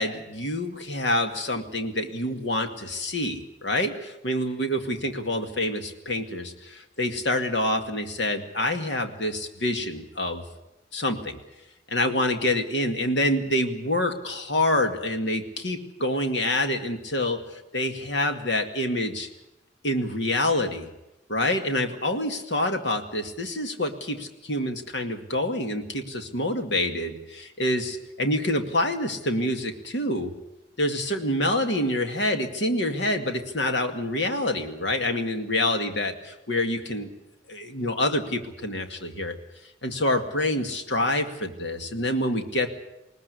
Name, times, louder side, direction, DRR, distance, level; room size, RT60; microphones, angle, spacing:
voice 1, 0.0-10.4 10.9-11.4 11.9-17.4 17.7-19.3 19.8-20.9 21.3-30.3 30.8-37.1 37.5-39.4 39.8-42.7, left 1 dB, 70° left, 6 dB, 2.3 m, -27 dB
20.5 x 19.0 x 8.3 m, 0.91 s
head